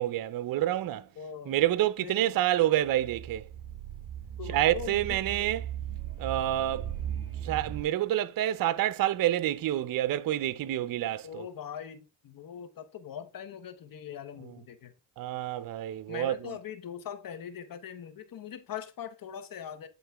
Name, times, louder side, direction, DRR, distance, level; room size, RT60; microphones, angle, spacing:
voice 1, 0.0-1.1 1.5-3.5 4.5-5.6 6.2-6.9 7.4-11.4 15.2-16.3, right 13 dB, 55° right, 0.6 m, -28 dB
voice 2, 1.2-1.6 2.0-2.4 4.4-5.5 11.2-14.9 16.1-19.9, left 8 dB, 55° left, 1.0 m, -42 dB
sound 1, 2.9-7.8, right 10 dB, 35° right, 2.4 m, -38 dB
9.3 x 3.8 x 3.4 m
cardioid pair, 80°, 42 cm